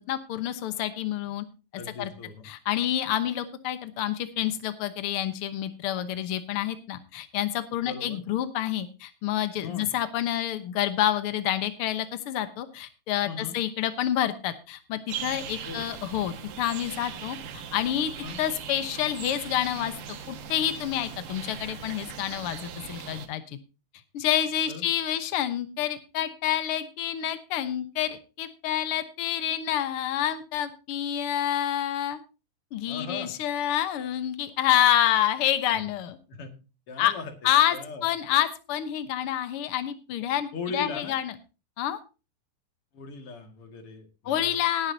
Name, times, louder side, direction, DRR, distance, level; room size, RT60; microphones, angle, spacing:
voice 1, 0.1-1.4 2.0-2.1 2.4-18.1 18.4-19.9 20.3-23.6 24.1-32.2 32.7-36.2 37.0-37.1 37.4-37.8 38.0-41.3 41.8-42.0 44.2-44.9, left 11 dB, 85° left, 11 dB, 1.2 m, -28 dB
voice 2, 1.7-2.4 7.9-8.2 9.6-9.9 13.2-13.5 15.6-15.8 18.2-18.4 24.6-24.9 32.9-33.3 35.7-35.8 36.3-36.6 36.9-37.3 37.7-38.1 40.5-41.2 42.9-44.6, left 4 dB, 45° left, 6 dB, 2.6 m, -38 dB
sound 1, 15.1-23.3, right 8 dB, 70° right, 2.9 m, -39 dB
18.0 x 9.6 x 2.7 m, 0.31 s
omnidirectional pair, 4.0 m